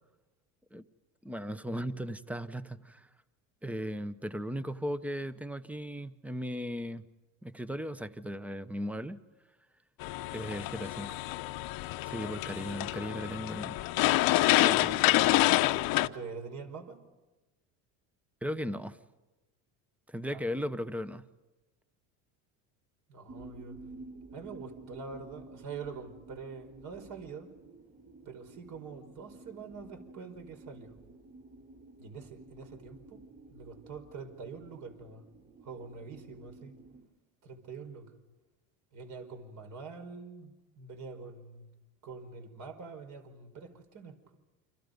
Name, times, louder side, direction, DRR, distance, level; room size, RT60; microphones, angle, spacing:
voice 1, 1.2-3.1 3.6-7.1 7.4-9.2 10.3-11.2 12.1-13.8 14.6-15.3 18.4-19.0 20.1-21.3, equal, 5° right, 13 dB, 1.1 m, -37 dB
sound 1, 10.0-16.1, left 17 dB, 65° left, 1.1 m, -27 dB
voice 2, 16.0-17.0 20.3-20.5 23.1-23.8 24.3-27.5 28.3-30.9 32.0-33.2 33.5-35.2 35.6-36.8 37.4-38.1 38.9-41.7 42.0-44.1, right 5 dB, 50° right, 5 dB, 5.2 m, -45 dB
sound 2, 23.3-37.0, right 3 dB, 30° right, 5.5 m, -52 dB
29.5 x 27.0 x 5.4 m, 1.1 s
supercardioid pair, 105°, 39 cm